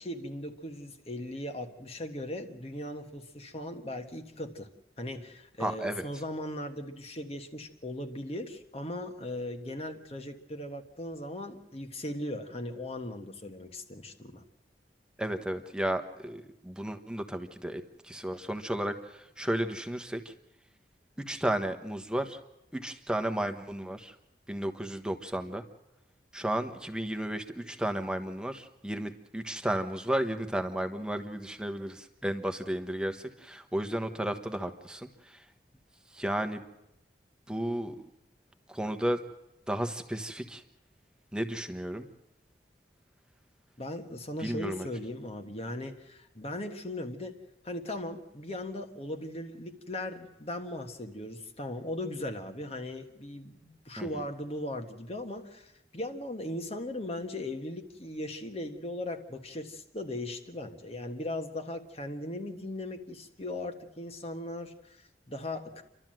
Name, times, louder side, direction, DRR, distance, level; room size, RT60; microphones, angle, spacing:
voice 1, 0.0-4.7 5.0-14.4 43.8-47.4 47.6-65.8, left 1 dB, 35° left, 6 dB, 1.5 m, -38 dB
voice 2, 5.6-6.0 15.2-20.3 21.2-22.4 22.7-24.2 24.5-25.6 26.3-35.5 36.1-36.6 37.5-38.1 38.7-39.2 39.7-40.6 41.3-42.1 44.4-44.9 54.0-54.2, right 1 dB, 5° right, 7 dB, 1.2 m, -33 dB
30.0 x 12.5 x 7.7 m, 0.90 s
head